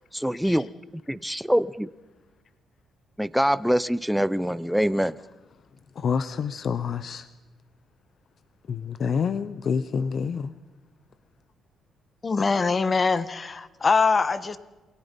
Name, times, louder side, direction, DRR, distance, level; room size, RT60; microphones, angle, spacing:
voice 1, 0.1-1.9 3.2-5.2, equal, ahead, 16 dB, 0.7 m, -24 dB
voice 2, 5.9-7.3 8.7-10.5, left 6 dB, 55° left, 13 dB, 0.9 m, -28 dB
voice 3, 12.2-14.6, left 4 dB, 35° left, 13 dB, 1.4 m, -23 dB
28.5 x 21.5 x 5.4 m, 1.1 s
cardioid pair, 90°, 0 cm